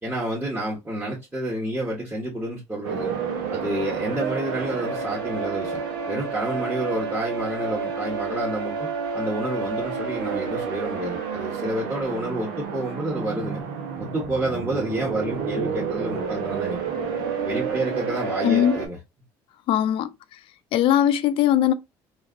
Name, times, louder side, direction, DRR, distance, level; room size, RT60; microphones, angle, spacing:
voice 1, 0.0-3.1 3.5-5.8 6.1-8.9 9.1-13.6 14.0-16.8 17.4-19.0, right 1 dB, 15° right, 1.1 m, -29 dB
sound 1, 2.8-18.9, right 5 dB, 85° right, 0.8 m, -30 dB
voice 2, 18.4-18.8 19.7-20.4 20.7-21.7, left 11 dB, 65° left, 0.4 m, -20 dB
3.2 x 2.5 x 2.4 m
supercardioid pair, 85°, 10 cm